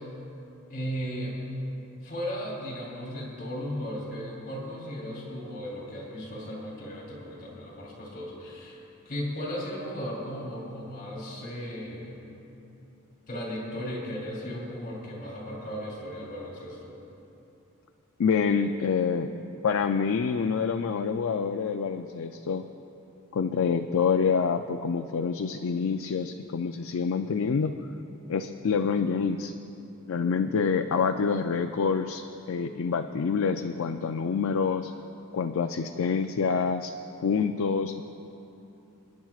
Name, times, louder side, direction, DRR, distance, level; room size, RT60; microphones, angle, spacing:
voice 1, 0.7-1.4 2.0-8.8 9.0-12.2 13.3-16.9, equal, 40° left, -3 dB, 3.2 m, -36 dB
voice 2, 18.2-19.3 19.6-22.6 23.3-27.7 28.3-29.5 30.1-34.9 35.3-38.0, left 5 dB, 65° left, 6 dB, 0.4 m, -27 dB
29.0 x 10.5 x 2.4 m, 2.9 s
head